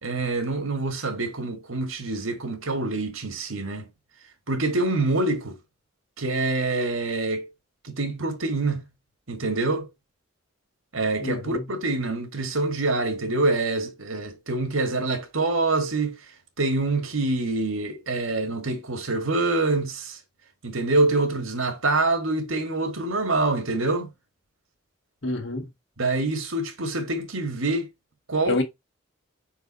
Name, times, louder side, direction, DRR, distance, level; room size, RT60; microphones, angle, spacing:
voice 1, 0.0-3.9 4.5-5.6 6.2-7.5 7.8-8.8 9.3-9.9 10.9-16.1 16.6-20.2 20.6-24.1 26.0-27.9 28.3-28.6, right 2 dB, 85° right, 1.7 m, -25 dB
voice 2, 11.2-11.7 25.2-25.7 28.4-28.6, left 2 dB, 60° left, 1.5 m, -27 dB
5.3 x 4.7 x 4.2 m
head